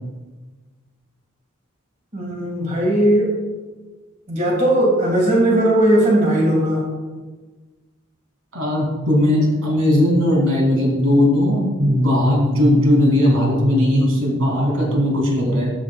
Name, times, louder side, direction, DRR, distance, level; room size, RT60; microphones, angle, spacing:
voice 1, 2.1-3.3 4.3-6.8, right 1 dB, 35° right, -2 dB, 1.9 m, -17 dB
voice 2, 8.5-15.7, left 1 dB, 85° right, -2 dB, 2.6 m, -17 dB
13.5 x 6.9 x 2.3 m, 1.3 s
head